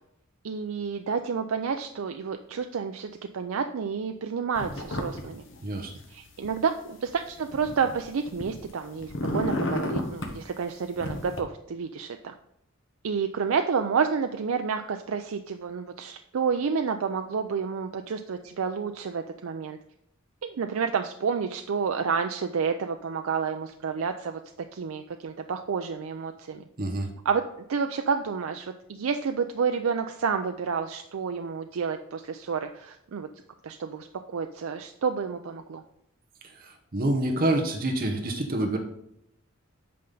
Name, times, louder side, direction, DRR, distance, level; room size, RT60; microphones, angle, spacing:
voice 1, 0.4-5.4 6.1-12.3 13.0-19.8 20.4-24.4 24.7-26.6 27.2-27.4 27.7-33.3 33.6-34.1 34.3-35.8, right 6 dB, 85° right, 7 dB, 0.4 m, -30 dB
sound 1, 4.6-5.2 5.5-6.5 7.1-8.7 9.0-10.4 11.0-11.4, left 1 dB, 65° left, 1.1 m, -32 dB
voice 2, 26.8-27.1 36.6-38.8, right 1 dB, 45° right, 2 dB, 0.9 m, -27 dB
8.5 x 5.6 x 3.9 m, 0.77 s
head